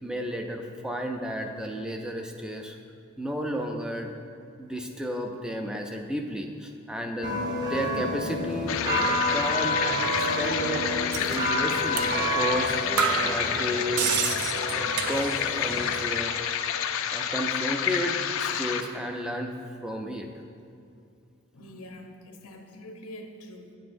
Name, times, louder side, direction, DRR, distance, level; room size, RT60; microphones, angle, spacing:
voice 1, 0.0-2.8 3.2-4.1 4.6-10.8 11.3-14.1 15.1-16.5 17.1-19.5 19.8-20.3, equal, 5° right, 3 dB, 0.4 m, -32 dB
sound 1, 7.2-15.9, equal, 20° right, 0.8 m, -30 dB
sound 2, 8.7-18.8, left 8 dB, 65° left, 0.4 m, -29 dB
sound 3, 11.1-11.4 12.0-12.1 12.5-12.6 13.0-15.6 15.9-16.5, right 7 dB, 80° right, 0.4 m, -30 dB
voice 2, 21.5-23.8, left 1 dB, 90° left, 3 dB, 0.8 m, -44 dB
9.4 x 7.7 x 2.6 m, 2.5 s
head